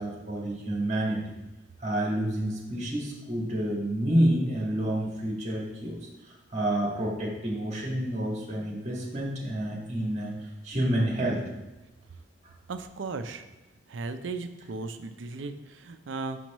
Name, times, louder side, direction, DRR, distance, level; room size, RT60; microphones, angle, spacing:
voice 1, 0.0-1.3 1.8-5.9 6.5-10.3 10.6-11.4, right 1 dB, 40° right, -3 dB, 1.7 m, -28 dB
voice 2, 12.7-13.4 13.9-16.4, right 3 dB, 80° right, 9 dB, 0.5 m, -36 dB
6.3 x 6.0 x 3.0 m, 1.1 s
head